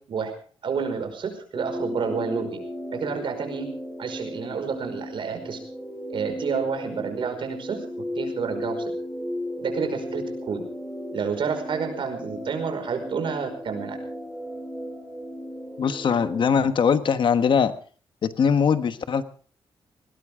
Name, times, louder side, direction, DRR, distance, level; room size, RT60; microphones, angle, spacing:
voice 1, 0.6-2.6 2.9-3.7 4.0-5.6 6.1-7.8 8.2-8.9 9.6-10.6 11.1-14.0, right 6 dB, 65° right, 5 dB, 5.3 m, -29 dB
sound 1, 1.5-16.5, equal, ahead, 4.3 m, -35 dB
voice 2, 15.8-17.7 18.2-19.2, left 6 dB, 60° left, 11 dB, 1.2 m, -21 dB
20.0 x 19.0 x 3.7 m, 0.43 s
cardioid pair, 95°, 9 cm